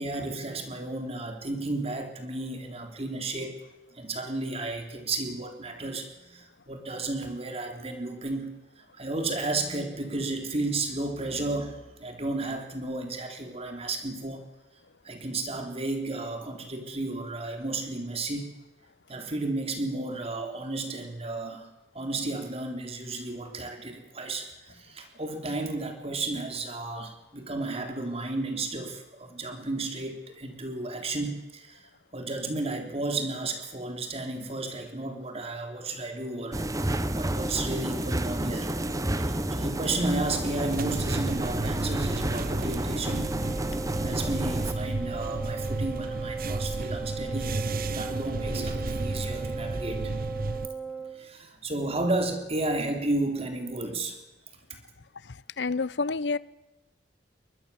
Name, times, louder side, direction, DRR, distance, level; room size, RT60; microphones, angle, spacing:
voice 1, 0.0-3.6 3.9-14.5 15.0-18.5 19.1-21.7 22.0-38.8 39.2-43.3 43.9-47.6 47.8-50.1 51.1-54.2 54.7-54.8, right 2 dB, 35° right, 5 dB, 3.5 m, -33 dB
sound 1, 36.5-44.7, right 1 dB, 20° right, 1.1 m, -30 dB
sound 2, 40.6-50.7, right 2 dB, 55° right, 1.0 m, -33 dB
Wind instrument woodwind instrument, 43.0-51.2, right 5 dB, ahead, 3.3 m, -37 dB
voice 2, 55.6-56.4, left 4 dB, 75° left, 19 dB, 0.8 m, -28 dB
23.5 x 20.5 x 7.1 m, 1.0 s
head